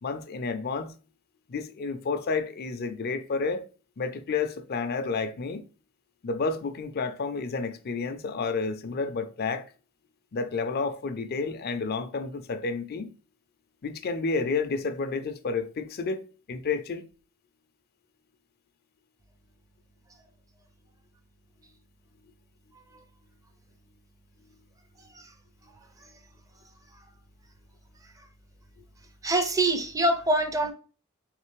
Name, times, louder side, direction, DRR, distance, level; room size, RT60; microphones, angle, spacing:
voice 1, 0.0-0.9 1.5-3.6 4.0-5.7 6.2-9.7 10.3-13.1 13.8-17.0, left 4 dB, 45° left, 0.4 m, -30 dB
voice 2, 25.0-25.3 26.0-26.1 26.9-27.1 28.0-28.1 29.2-30.7, right 1 dB, 15° right, 0.5 m, -26 dB
3.7 x 3.3 x 3.1 m
head